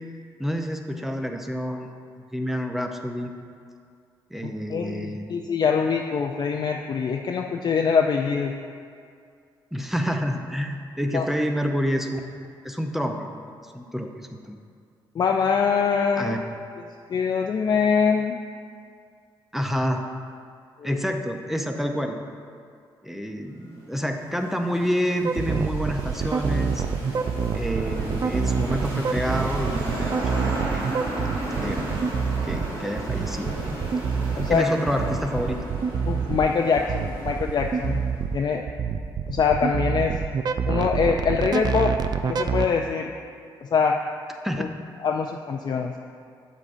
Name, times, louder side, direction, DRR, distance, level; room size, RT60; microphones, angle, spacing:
voice 1, 0.4-1.9 2.3-3.3 4.3-5.3 9.7-12.2 12.6-13.3 13.6-14.6 16.2-16.4 19.5-20.0 20.8-22.2 23.0-26.8 27.5-30.9 31.6-32.0 32.4-33.8 34.1-35.6 44.4-44.7, equal, 5° right, 4 dB, 0.6 m, -28 dB
voice 2, 4.4-8.5 11.1-11.3 15.2-16.4 17.1-18.4 20.8-21.0 34.4-34.7 36.1-38.0 38.3-38.6 39.3-40.1 40.7-41.9 42.2-43.1 43.6-44.0 44.6-44.7 45.0-45.9, left 6 dB, 50° left, 2 dB, 0.4 m, -23 dB
sound 1, 23.7-38.2, right 1 dB, 85° right, 1.5 m, -35 dB
sound 2, 25.2-42.7, right 6 dB, 50° right, 0.4 m, -26 dB
8.4 x 7.3 x 2.6 m, 2.3 s
cardioid pair, 70°, 9 cm